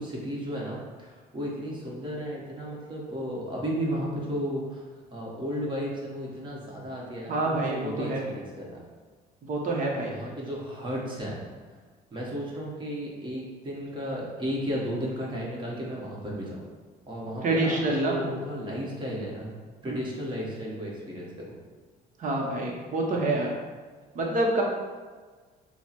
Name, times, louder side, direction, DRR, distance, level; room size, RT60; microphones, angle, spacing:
voice 1, 0.0-4.8 5.1-8.8 10.0-11.4 12.1-16.6 17.1-19.6 19.8-21.5, equal, 30° right, -4 dB, 1.2 m, -34 dB
voice 2, 7.3-8.3 9.5-10.2 17.4-18.2 19.8-20.0 22.2-23.5 24.1-24.6, right 2 dB, 50° right, 0 dB, 0.7 m, -27 dB
6.2 x 2.1 x 3.0 m, 1.4 s
cardioid pair, 110°, 17 cm